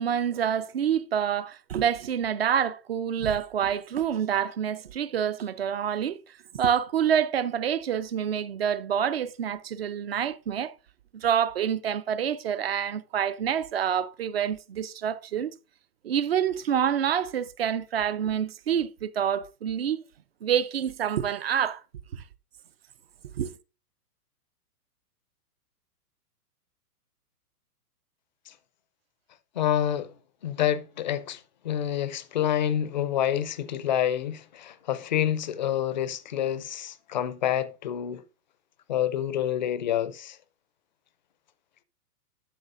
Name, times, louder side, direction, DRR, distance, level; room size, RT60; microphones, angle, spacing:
voice 1, 0.0-6.2 6.5-10.7 11.1-15.5 16.0-20.0 20.4-21.8 22.1-22.2 23.4-23.5, right 8 dB, 45° right, 0.4 m, -27 dB
voice 2, 29.5-30.1 30.4-38.2 38.9-40.4, left 10 dB, 30° left, 0.4 m, -28 dB
12.0 x 6.0 x 2.5 m
hypercardioid pair, 150°, 47 cm